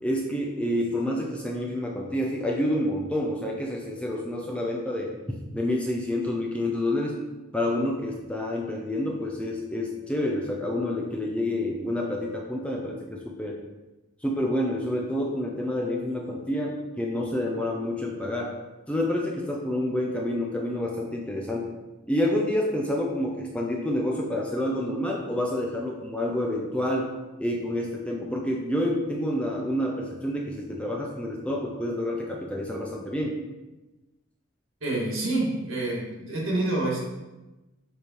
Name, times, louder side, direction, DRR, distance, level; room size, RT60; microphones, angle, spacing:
voice 1, 0.0-5.1 5.5-7.2 7.5-13.6 14.2-18.6 18.9-21.7 22.1-27.1 27.4-33.4, left 1 dB, 5° left, -1 dB, 0.6 m, -28 dB
voice 2, 34.8-37.0, right 2 dB, 70° right, -3 dB, 1.9 m, -27 dB
6.5 x 3.4 x 4.4 m, 1.1 s
head